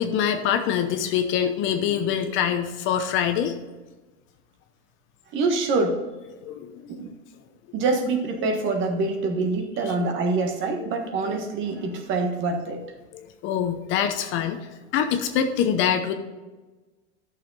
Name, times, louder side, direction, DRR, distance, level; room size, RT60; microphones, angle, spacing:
voice 1, 0.0-3.5 6.4-6.8 9.8-9.9 10.8-10.9 11.2-11.4 13.1-14.6 14.9-16.1, left 8 dB, 35° left, 7 dB, 0.8 m, -24 dB
voice 2, 5.3-6.0 7.0-7.1 7.7-12.8, right 3 dB, 35° right, 5 dB, 1.5 m, -25 dB
11.5 x 6.7 x 4.0 m, 1.2 s
supercardioid pair, 140°, 33 cm